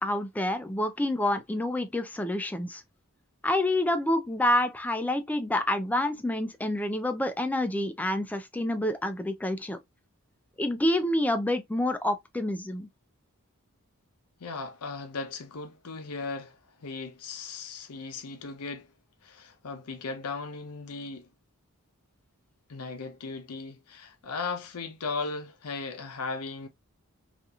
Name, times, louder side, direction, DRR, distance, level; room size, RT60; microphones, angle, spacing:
voice 1, 0.0-2.8 3.4-9.8 10.6-12.9, left 1 dB, 5° left, 0.3 m, -28 dB
voice 2, 14.4-18.9 19.2-21.3 22.7-26.7, left 4 dB, 80° left, 0.6 m, -37 dB
2.8 x 2.5 x 2.3 m
head